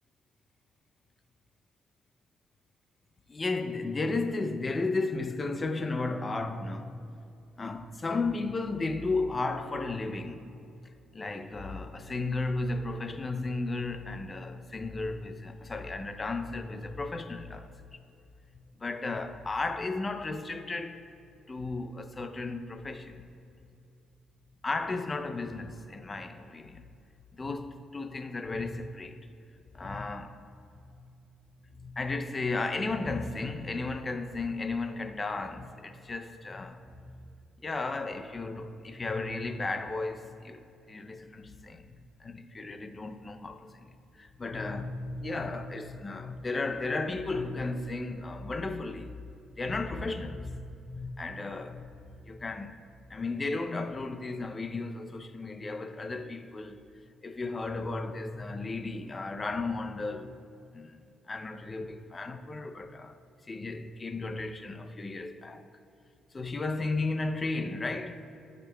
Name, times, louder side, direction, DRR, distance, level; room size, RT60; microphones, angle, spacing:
voice 1, 3.3-7.0 7.6-10.5 11.1-17.7 18.8-21.1 21.5-23.2 24.6-26.8 27.3-29.3 29.7-30.4 30.7-31.1 31.7-37.1 37.6-40.6 40.9-41.9 42.2-49.1 49.6-52.8 53.1-56.8 57.2-60.4 60.7-61.0 61.3-63.2 63.5-65.7 66.3-68.3, left 3 dB, 30° left, 0.5 m, -34 dB
14.5 x 5.1 x 2.2 m
cardioid pair, 90°, 0 cm